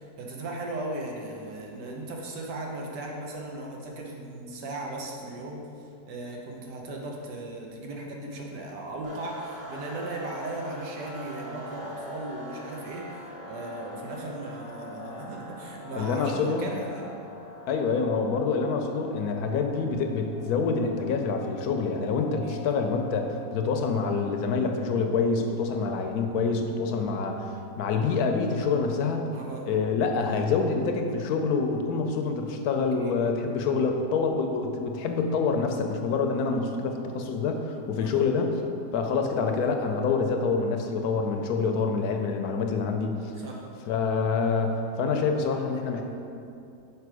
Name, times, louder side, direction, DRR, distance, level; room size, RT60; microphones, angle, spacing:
voice 1, 0.0-17.1 22.4-22.6 29.3-29.7 33.0-33.2 38.0-38.3 43.4-43.6, right 2 dB, 80° right, 0 dB, 1.5 m, -37 dB
sound 1, 9.0-23.6, left 1 dB, 50° right, 1.6 m, -43 dB
voice 2, 16.0-16.7 17.7-29.3 29.7-38.6 38.9-43.3 43.9-46.0, left 4 dB, 70° left, 4 dB, 1.0 m, -26 dB
6.0 x 5.0 x 4.7 m, 2.6 s
omnidirectional pair, 1.8 m